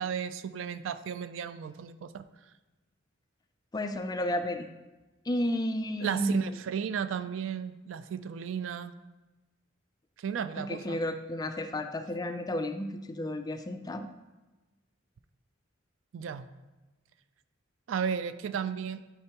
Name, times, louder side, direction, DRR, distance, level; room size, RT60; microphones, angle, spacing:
voice 1, 0.0-2.2 6.0-8.9 10.2-11.0 16.1-16.5 17.9-19.0, right 7 dB, 75° right, 13 dB, 0.3 m, -34 dB
voice 2, 3.7-4.7 5.3-6.5 10.6-14.1, left 1 dB, 20° left, 8 dB, 0.3 m, -32 dB
9.8 x 4.5 x 2.9 m, 1.1 s
head